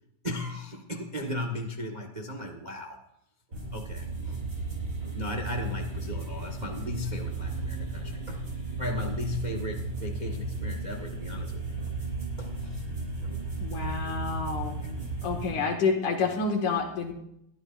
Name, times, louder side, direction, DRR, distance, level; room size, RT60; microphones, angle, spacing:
voice 1, 0.2-3.0 3.7-4.6 5.1-8.5 8.8-11.6 12.4-12.8 13.2-13.3 14.8-14.9, left 2 dB, 60° right, 2 dB, 0.4 m, -36 dB
sound 1, 3.5-15.5, right 3 dB, 30° right, 6.5 m, -34 dB
voice 2, 13.3-14.8 15.2-17.1, left 4 dB, 85° left, 1 dB, 3.3 m, -29 dB
22.0 x 14.0 x 2.6 m, 0.78 s
omnidirectional pair, 3.4 m